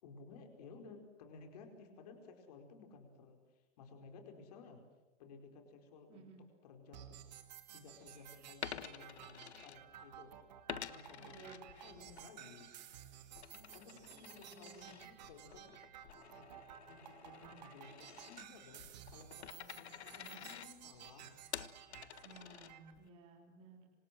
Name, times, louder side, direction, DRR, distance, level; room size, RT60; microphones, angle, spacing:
voice 1, 0.0-4.8 5.2-6.3 6.6-7.2 7.7-10.3 10.7-12.7 13.7-15.7 16.4-16.5 16.8-21.3, left 4 dB, 35° left, 5 dB, 4.8 m, -57 dB
voice 2, 6.1-6.4 11.2-12.2 13.5-14.9 20.1-20.5 22.2-23.9, right 4 dB, 15° right, 1 dB, 3.5 m, -58 dB
sound 1, 6.9-22.9, right 10 dB, 35° right, 2.1 m, -55 dB
Coin (dropping), 8.6-10.2 10.7-12.3 12.6-23.1, left 9 dB, 70° left, 1.4 m, -50 dB
27.5 x 26.0 x 7.7 m, 1.1 s
hypercardioid pair, 180°, 35 cm